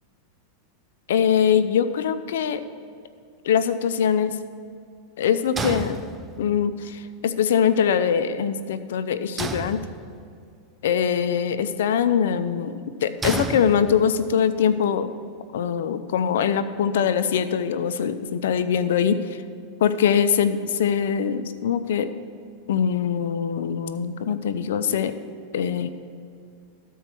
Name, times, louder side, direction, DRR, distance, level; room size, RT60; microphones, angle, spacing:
voice 1, 1.1-2.6 3.4-4.4 5.2-6.0 6.4-9.8 10.8-15.1 15.5-19.4 19.8-22.1 22.7-25.2 25.5-25.9, left 8 dB, 80° left, 12 dB, 0.5 m, -23 dB
sound 1, 5.6-6.6 9.4-10.4 13.2-14.3, right 3 dB, 15° right, 0.5 m, -31 dB
13.0 x 4.6 x 6.1 m, 2.3 s
hypercardioid pair, 125°, 0 cm